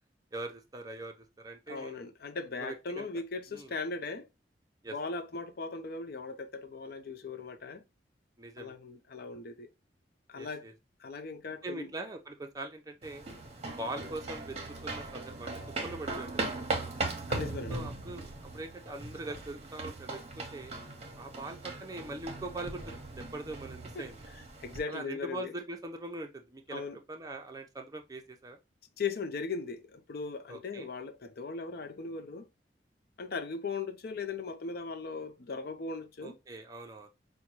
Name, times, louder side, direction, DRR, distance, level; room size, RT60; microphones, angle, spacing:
voice 1, 0.3-2.0 2.6-3.0 3.5-3.7 4.8-4.9 8.4-8.8 10.3-10.7 11.6-13.2 13.7-14.6 14.8-15.5 15.8-16.6 17.7-20.7 21.1-24.2 24.9-28.6 30.5-30.9 36.2-37.1, right 2 dB, 20° right, 0.6 m, -42 dB
voice 2, 1.7-4.3 4.9-7.8 8.6-9.7 10.3-10.7 11.0-11.9 17.3-17.9 23.9-24.1 24.3-25.5 26.7-27.0 29.0-32.5 33.2-36.4, left 4 dB, 60° left, 0.5 m, -38 dB
sound 1, 13.0-24.8, right 2 dB, 35° right, 0.9 m, -39 dB
5.2 x 2.2 x 3.0 m
head